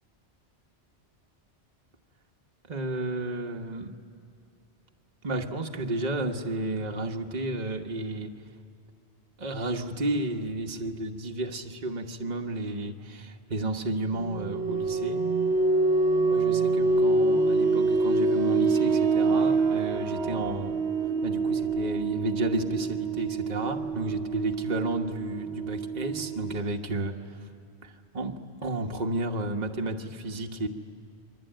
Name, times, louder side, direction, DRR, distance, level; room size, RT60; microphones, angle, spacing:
voice 1, 2.7-4.0 5.2-8.4 9.4-15.3 16.3-20.8 21.2-27.4 27.8-30.7, right 2 dB, 40° right, 2 dB, 1.3 m, -32 dB
sound 1, 14.1-26.6, right 3 dB, 65° right, 1.3 m, -26 dB
28.5 x 23.0 x 9.1 m, 2.4 s
omnidirectional pair, 1.2 m